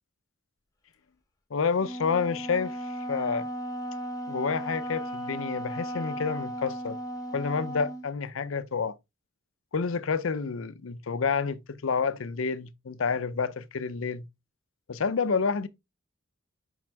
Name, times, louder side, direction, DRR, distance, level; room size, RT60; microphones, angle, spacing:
voice 1, 1.5-3.5 4.3-7.0 7.3-8.9 9.7-14.2 14.9-15.7, left 5 dB, 80° left, 0.6 m, -29 dB
Wind instrument woodwind instrument, 1.8-8.1, right 1 dB, 20° left, 1.2 m, -36 dB
6.0 x 5.5 x 3.4 m
head